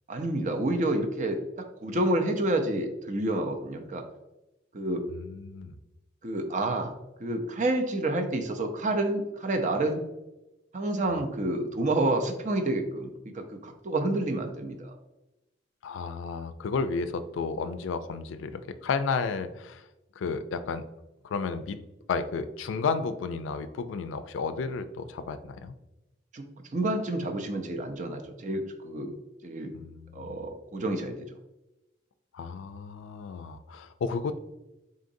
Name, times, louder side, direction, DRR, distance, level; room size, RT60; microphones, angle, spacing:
voice 1, 0.1-1.4 1.8-4.0 4.7-5.1 6.2-6.9 7.2-10.0 10.7-13.1 13.3-14.9 26.3-26.4 26.7-29.2 29.4-29.7 30.1-31.3, right 1 dB, 40° right, 5 dB, 0.5 m, -29 dB
voice 2, 5.1-5.8 11.1-11.2 15.8-19.8 20.2-20.8 21.2-21.8 22.1-25.7 29.7-30.5 32.3-34.4, left 5 dB, 85° left, 11 dB, 0.3 m, -32 dB
3.8 x 3.8 x 2.6 m, 0.97 s
head